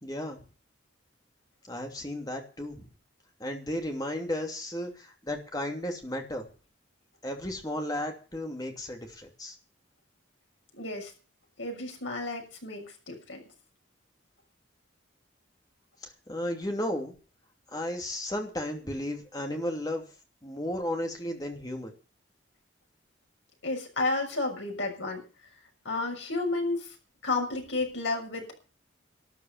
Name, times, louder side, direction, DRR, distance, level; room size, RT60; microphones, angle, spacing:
voice 1, 0.0-0.4 1.7-2.9 3.4-6.4 7.2-9.5 16.0-17.1 17.7-20.0 20.4-21.9, left 1 dB, 20° left, 3 dB, 2.8 m, -34 dB
voice 2, 10.8-11.1 11.6-13.4 23.6-25.2 25.8-26.9 27.2-28.6, left 3 dB, 80° left, 1 dB, 6.6 m, -31 dB
13.0 x 11.0 x 7.4 m, 0.37 s
head